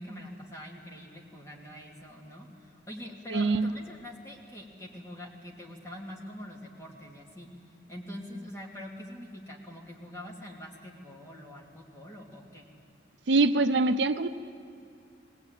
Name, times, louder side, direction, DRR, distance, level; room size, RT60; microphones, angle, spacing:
voice 1, 0.0-7.5 7.9-12.7, left 1 dB, 15° left, -2 dB, 2.7 m, -44 dB
voice 2, 3.3-3.7 13.3-14.3, right 3 dB, 75° right, 11 dB, 0.6 m, -24 dB
19.5 x 19.5 x 9.1 m, 2.3 s
head